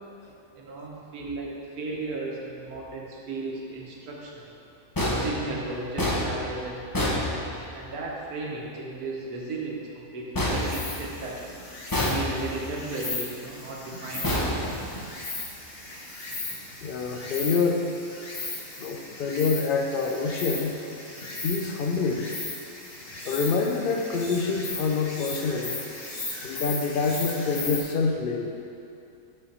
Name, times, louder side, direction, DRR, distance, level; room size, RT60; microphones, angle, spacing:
voice 1, 0.5-4.6 5.1-7.2 7.7-11.6 12.1-14.4 16.7-16.8, right 2 dB, 75° right, -2 dB, 1.5 m, -35 dB
sound 1, 5.0-8.0 10.3-11.4 11.9-12.7 14.2-15.3, left 1 dB, 20° left, 0.5 m, -28 dB
Insect, 10.5-27.8, left 2 dB, 45° left, 1.2 m, -37 dB
voice 2, 16.8-17.9 18.8-20.7 21.4-22.3 23.2-25.8 26.4-28.5, left 4 dB, 70° left, 2 dB, 0.5 m, -26 dB
8.5 x 4.4 x 4.1 m, 2.6 s
omnidirectional pair, 1.6 m